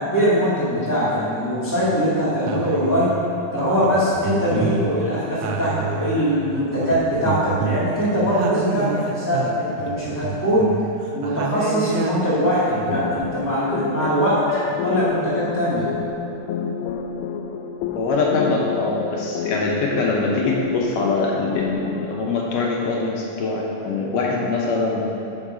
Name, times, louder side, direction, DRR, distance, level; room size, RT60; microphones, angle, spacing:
voice 1, 0.0-3.1 3.5-10.7 11.1-15.9, equal, 10° left, -11 dB, 0.9 m, -21 dB
sound 1, 1.8-2.0 2.4-3.3 3.8-6.5 6.8-12.4 12.8-13.3, right 6 dB, 80° right, 1.5 m, -29 dB
sound 2, 12.9-22.2, left 6 dB, 90° left, 2.2 m, -30 dB
voice 2, 14.5-14.9 17.9-25.0, left 3 dB, 70° left, -2 dB, 1.9 m, -23 dB
8.8 x 5.5 x 6.2 m, 2.8 s
omnidirectional pair, 3.7 m